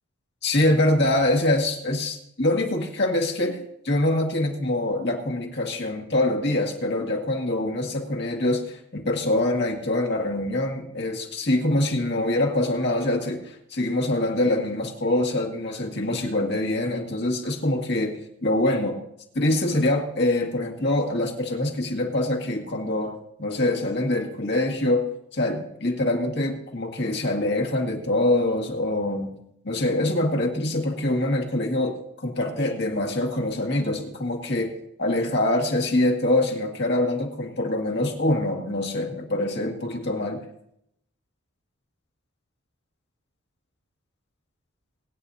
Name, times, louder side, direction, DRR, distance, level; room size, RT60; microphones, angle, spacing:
voice 1, 0.4-18.1 18.4-19.0 19.3-23.1 23.4-25.1 25.3-29.3 29.6-34.7 35.0-40.4, left 1 dB, 50° left, 1 dB, 2.0 m, -24 dB
24.0 x 9.3 x 2.8 m, 0.76 s
head